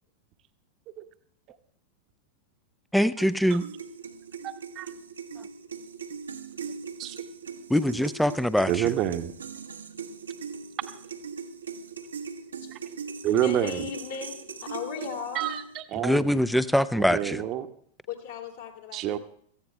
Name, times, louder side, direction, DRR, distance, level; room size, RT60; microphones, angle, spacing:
voice 1, 2.9-3.6 7.7-8.9 16.0-17.4, equal, ahead, 16 dB, 0.6 m, -23 dB
sound 1, 3.2-15.8, right 6 dB, 75° right, 1.1 m, -40 dB
voice 2, 4.4-4.9 7.0-7.2 8.7-9.3 12.7-12.8 13.2-13.9 15.3-16.4 17.0-17.7 18.9-19.2, right 11 dB, 35° right, 9 dB, 1.0 m, -28 dB
voice 3, 13.4-15.5 18.1-19.2, left 6 dB, 60° left, 1 dB, 2.9 m, -37 dB
17.5 x 14.5 x 3.3 m, 0.63 s
figure-of-eight pair, 90°, 0 cm